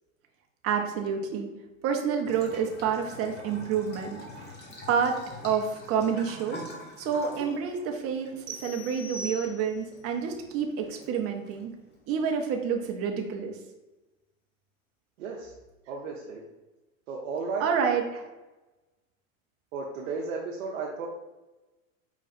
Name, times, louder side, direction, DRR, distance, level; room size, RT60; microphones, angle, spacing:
voice 1, 0.6-1.5 1.8-4.2 4.9-5.2 5.4-6.6 7.0-11.7 12.1-13.6 17.6-18.3, right 7 dB, 35° right, 3 dB, 0.8 m, -28 dB
Bathtub (filling or washing) / Trickle dribble, 2.3-13.2, left 1 dB, 25° left, 1.2 m, -47 dB
sound 1, 8.5-10.0, right 1 dB, 90° right, 1.0 m, -41 dB
voice 2, 15.2-15.5 15.9-16.4 17.1-17.7 19.7-21.1, right 4 dB, 70° right, -2 dB, 0.8 m, -34 dB
4.8 x 2.4 x 4.2 m, 1.1 s
hypercardioid pair, 100°, 40 cm